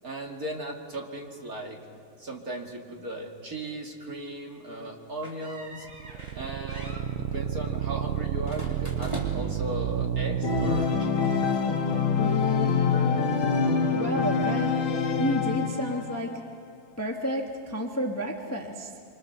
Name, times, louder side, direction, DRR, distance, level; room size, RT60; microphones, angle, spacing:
voice 1, 0.0-1.8 2.2-5.9 6.3-11.3, right 1 dB, 30° right, 0 dB, 2.1 m, -37 dB
sound 1, 5.2-6.4 6.7-7.1 8.4-9.6, equal, 10° right, 3.4 m, -40 dB
sound 2, 5.8-10.8, right 9 dB, 90° right, 1.3 m, -30 dB
Organ, 10.4-16.2, left 5 dB, 50° left, 1.8 m, -25 dB
voice 2, 13.9-14.7 15.2-16.3 17.0-19.0, equal, 10° left, 1 dB, 0.7 m, -30 dB
26.0 x 25.5 x 6.8 m, 2.3 s
omnidirectional pair, 3.8 m